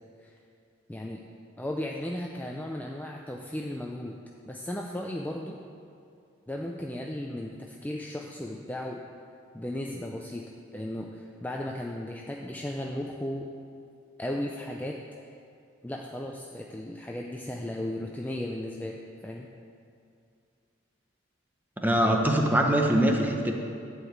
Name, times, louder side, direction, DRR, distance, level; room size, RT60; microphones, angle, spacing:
voice 1, 0.9-1.2 1.6-4.2 4.5-5.6 6.5-9.0 9.5-10.4 10.7-13.5 14.2-15.0 15.8-19.5, left 1 dB, 10° left, 0 dB, 0.4 m, -35 dB
voice 2, 21.8-23.5, right 1 dB, 10° right, 1 dB, 0.9 m, -23 dB
11.0 x 4.9 x 8.0 m, 2.4 s
head